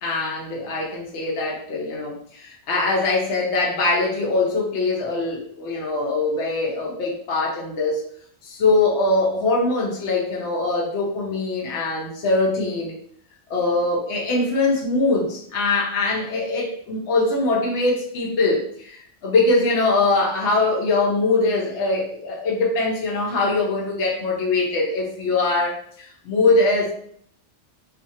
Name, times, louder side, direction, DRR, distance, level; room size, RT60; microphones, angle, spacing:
voice 1, 0.0-8.1 8.4-12.9 13.5-26.9, left 3 dB, 75° left, -3 dB, 1.0 m, -22 dB
2.5 x 2.4 x 2.7 m, 0.62 s
omnidirectional pair, 1.2 m